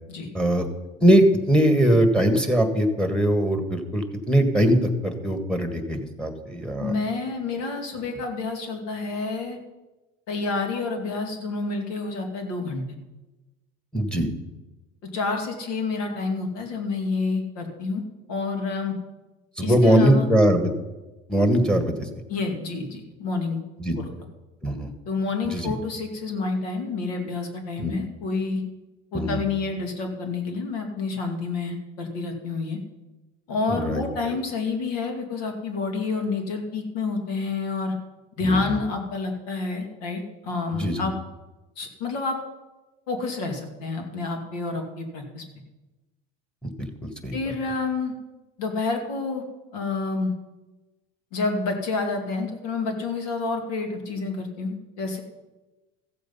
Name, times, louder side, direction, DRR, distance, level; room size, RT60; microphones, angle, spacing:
voice 1, 0.3-0.6 1.0-4.8 5.0-6.9 13.9-14.3 19.6-20.7 21.3-22.1 23.8-24.0 24.6-24.9 25.4-25.7 27.8-27.9 29.1-29.4 33.7-34.3 38.4-38.7 40.7-41.0 46.6-47.4, right 1 dB, 5° left, 6 dB, 1.6 m, -21 dB
voice 2, 6.8-9.6 10.3-12.8 15.1-18.0 18.3-18.9 19.6-20.3 22.3-23.6 24.0-24.1 25.1-28.6 29.1-32.8 33.5-37.9 38.4-41.1 41.8-42.4 43.1-45.4 47.3-48.1 48.6-49.4 49.7-50.3 51.3-55.2, left 3 dB, 85° left, 4 dB, 2.3 m, -28 dB
14.5 x 7.6 x 5.4 m, 1.1 s
supercardioid pair, 115°, 19 cm